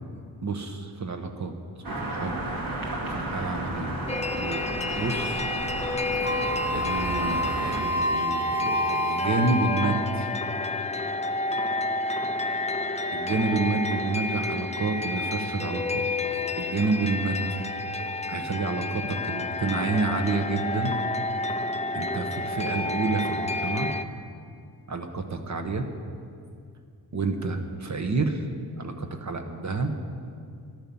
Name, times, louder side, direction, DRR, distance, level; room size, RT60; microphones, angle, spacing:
voice 1, 0.4-1.5 1.9-2.4 3.0-4.1 4.4-4.6 5.0-5.5 6.7-10.3 13.1-16.0 16.6-17.6 18.3-19.0 19.3-21.0 21.9-23.9 24.9-25.9 27.1-28.5 28.8-29.9, right 3 dB, 45° right, 6 dB, 1.4 m, -29 dB
sound 1, 1.8-7.8, right 1 dB, 60° right, 2.4 m, -33 dB
sound 2, 4.1-24.0, left 2 dB, 15° left, 0.6 m, -30 dB
Wind instrument woodwind instrument, 6.2-10.4, right 1 dB, 10° right, 1.6 m, -29 dB
13.5 x 12.0 x 7.2 m, 2.4 s
wide cardioid pair, 115°, 40 cm